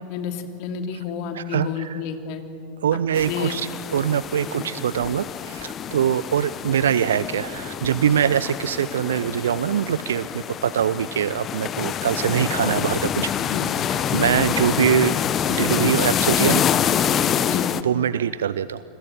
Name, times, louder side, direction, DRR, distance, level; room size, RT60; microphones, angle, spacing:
voice 1, 0.1-2.4 3.3-3.6 4.6-4.7 13.5-13.7 17.4-17.7, left 7 dB, 45° left, 5 dB, 2.9 m, -30 dB
voice 2, 1.3-2.0 2.8-13.3 14.1-15.1 15.5-16.7 17.8-18.8, right 9 dB, 65° right, 16 dB, 0.6 m, -23 dB
sound 1, 3.1-17.8, left 9 dB, 25° left, 1.0 m, -26 dB
28.5 x 21.5 x 9.3 m, 3.0 s
figure-of-eight pair, 90°, 0 cm